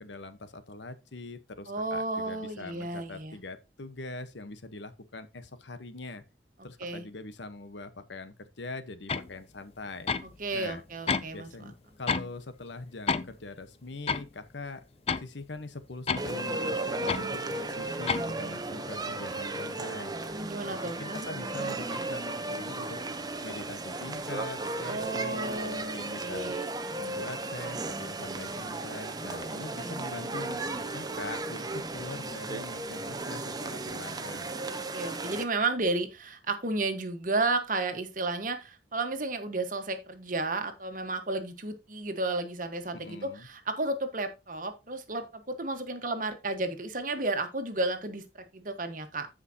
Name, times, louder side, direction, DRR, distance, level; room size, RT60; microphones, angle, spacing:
voice 1, 0.0-6.2 6.6-10.1 10.5-10.8 11.3-14.8 15.2-20.2 20.8-23.0 23.4-26.5 27.0-30.6 30.9-34.6 42.9-43.5, left 3 dB, 80° left, 1.1 m, -42 dB
voice 2, 1.7-3.4 6.8-7.1 10.4-11.5 20.3-21.3 24.9-26.7 29.5-30.0 34.7-49.3, right 2 dB, 45° right, 1.4 m, -33 dB
sound 1, 9.1-9.3 10.1-10.3 11.1-11.3 12.1-12.3 13.1-13.3 14.1-14.3 15.1-15.3 16.1-16.3 17.1-17.3 18.1-18.3, left 5 dB, 35° left, 0.5 m, -29 dB
sound 2, 16.2-35.4, right 2 dB, 20° right, 0.8 m, -35 dB
15.0 x 5.0 x 2.8 m
head